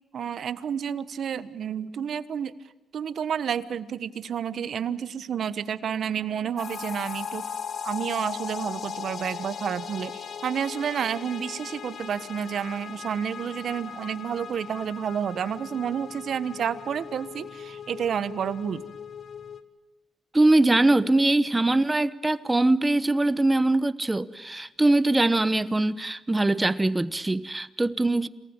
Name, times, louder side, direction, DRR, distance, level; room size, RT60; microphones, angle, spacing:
voice 1, 0.1-2.5 2.9-7.4 7.8-18.8, right 8 dB, 60° right, 14 dB, 1.3 m, -30 dB
sound 1, 6.6-19.6, left 7 dB, 50° left, 1.8 m, -38 dB
voice 2, 20.3-28.3, right 2 dB, 15° right, 15 dB, 1.1 m, -22 dB
27.5 x 19.0 x 9.0 m, 1.2 s
cardioid pair, 90°, 0 cm